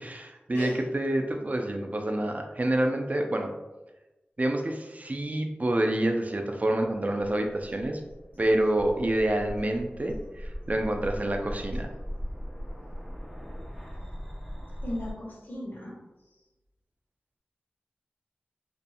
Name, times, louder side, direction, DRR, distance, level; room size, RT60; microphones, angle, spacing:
voice 1, 0.0-3.5 4.4-8.0 8.4-11.9, right 1 dB, 40° right, 4 dB, 0.4 m, -27 dB
sound 1, 6.9-15.1, equal, 5° left, 0.7 m, -39 dB
voice 2, 14.8-16.0, left 1 dB, 55° left, -4 dB, 1.0 m, -36 dB
2.7 x 2.6 x 2.3 m, 1.1 s
cardioid pair, 40°, 4 cm